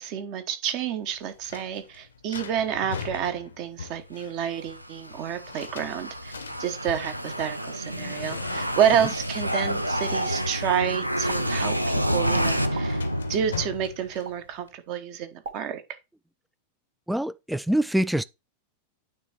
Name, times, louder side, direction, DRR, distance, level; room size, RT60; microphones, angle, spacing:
voice 1, 0.0-6.3 6.6-13.0 13.3-15.8, right 8 dB, 40° right, 1.1 m, -29 dB
sound 1, 1.0-14.7, left 6 dB, 70° left, 0.7 m, -41 dB
sound 2, 4.6-13.9, equal, 85° right, 0.5 m, -29 dB
sound 3, 11.3-11.4 12.7-12.9 14.2-14.4 15.4-15.6, right 5 dB, 60° right, 1.4 m, -37 dB
voice 2, 17.1-18.2, right 1 dB, 5° right, 0.3 m, -24 dB
9.0 x 3.4 x 4.4 m
figure-of-eight pair, 90°, 0 cm